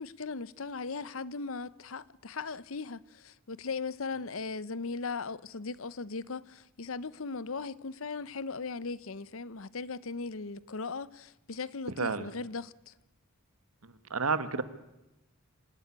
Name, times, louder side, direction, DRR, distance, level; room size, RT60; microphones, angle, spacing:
voice 1, 0.0-12.9, left 4 dB, 65° left, 0.8 m, -38 dB
voice 2, 12.0-12.3 14.1-14.6, right 4 dB, 90° right, 1.6 m, -29 dB
26.0 x 13.0 x 10.0 m
head